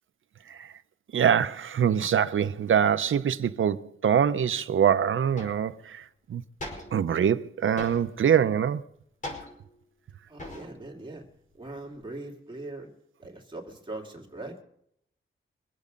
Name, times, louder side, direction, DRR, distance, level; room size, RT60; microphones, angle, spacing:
voice 1, 1.1-6.0 6.3-6.4 6.9-8.8, right 8 dB, 70° right, 0.7 m, -24 dB
sound 1, 4.7-4.8 5.4-5.7 6.6-7.1 7.8-8.3 9.2-9.8 10.4-10.9 11.2-12.0, left 1 dB, 35° left, 5.0 m, -41 dB
voice 2, 10.3-11.2 11.5-12.9 13.2-14.6, right 2 dB, 20° right, 2.6 m, -40 dB
24.0 x 8.4 x 5.2 m
wide cardioid pair, 125°, 21 cm